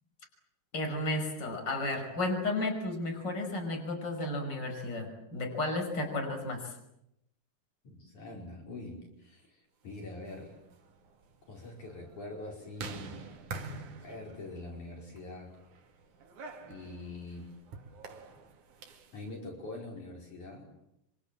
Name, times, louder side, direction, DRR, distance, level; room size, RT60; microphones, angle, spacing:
voice 1, 0.7-6.7, left 2 dB, 30° left, 4 dB, 6.0 m, -33 dB
voice 2, 7.8-10.5 11.5-13.2 14.0-15.6 16.6-17.5 19.1-20.7, left 2 dB, 55° left, 0 dB, 6.2 m, -44 dB
sound 1, 10.1-19.2, right 4 dB, 60° right, 3.6 m, -47 dB
28.0 x 25.5 x 7.6 m, 0.83 s
omnidirectional pair, 4.1 m